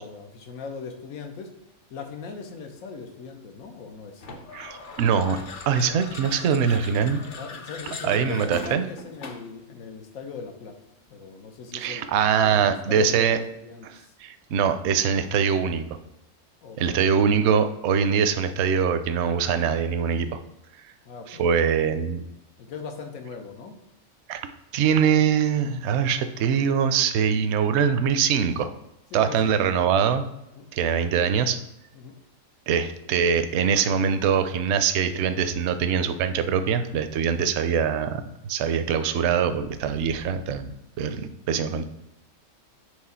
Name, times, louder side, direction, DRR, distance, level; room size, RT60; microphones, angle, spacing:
voice 1, 0.0-1.5 1.9-4.4 7.3-10.8 11.1-12.1 12.4-14.1 16.6-17.1 21.0-21.6 22.6-23.8 29.1-29.6 30.6-30.7 31.9-32.2, left 5 dB, 85° left, 5 dB, 1.2 m, -39 dB
sound 1, 4.2-9.6, left 3 dB, 50° left, 0.7 m, -40 dB
voice 2, 4.5-5.4 5.7-7.2 8.0-8.8 11.7-13.4 13.8-15.8 16.8-20.4 21.3-22.2 24.3-24.4 24.7-28.7 29.1-30.2 30.7-31.6 32.7-40.7 41.0-41.2 41.5-41.8, right 7 dB, 65° right, 10 dB, 0.8 m, -23 dB
4.9 x 3.5 x 5.5 m, 0.87 s
omnidirectional pair, 1.4 m